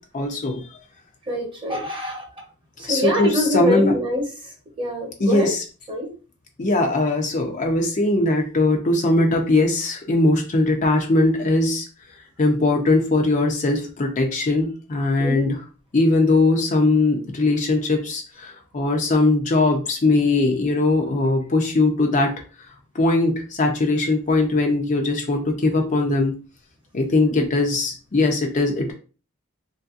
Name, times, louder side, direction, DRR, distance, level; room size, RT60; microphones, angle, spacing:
voice 1, 0.1-0.7 2.8-4.0 5.2-5.6 6.6-11.9 12.4-15.6 15.9-22.3 22.9-26.3 26.9-28.9, left 2 dB, 35° left, 2 dB, 0.5 m, -20 dB
voice 2, 1.3-2.3 2.8-4.2 4.8-5.5 5.9-6.1 15.2-15.4 27.3-27.5, left 1 dB, 25° right, 0 dB, 0.9 m, -24 dB
3.3 x 2.6 x 2.4 m, 0.35 s
head